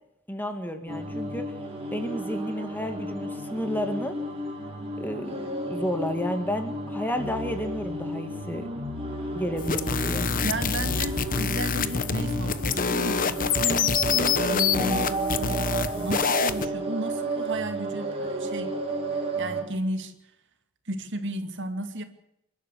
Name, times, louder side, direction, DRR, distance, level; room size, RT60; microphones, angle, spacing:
voice 1, 0.3-1.6 1.9-4.2 5.0-8.7 9.3-10.3, left 1 dB, 10° left, 7 dB, 2.0 m, -31 dB
sound 1, 0.9-19.6, right 2 dB, 25° right, 5.1 m, -32 dB
sound 2, 9.6-16.7, left 6 dB, 40° left, 1.1 m, -26 dB
voice 2, 10.4-18.8 19.4-20.1 20.9-22.0, right 1 dB, 55° right, 7 dB, 2.4 m, -34 dB
28.0 x 12.0 x 8.4 m, 0.81 s
head